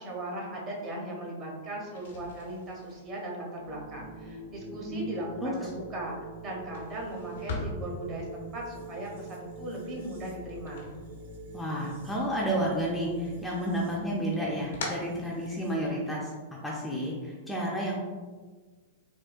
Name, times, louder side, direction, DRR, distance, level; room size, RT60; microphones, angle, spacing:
voice 1, 0.0-6.1 6.4-10.9, right 1 dB, 35° right, -2 dB, 0.8 m, -38 dB
sound 1, 1.9-11.8 12.1-13.0 13.4-16.0, left 2 dB, 80° left, 0.8 m, -43 dB
sound 2, 3.6-15.9, right 2 dB, 75° right, 1.2 m, -46 dB
voice 2, 11.5-16.3 16.6-18.0, equal, 5° left, -4 dB, 0.4 m, -31 dB
3.5 x 2.2 x 2.5 m, 1.4 s
hypercardioid pair, 130°, 0 cm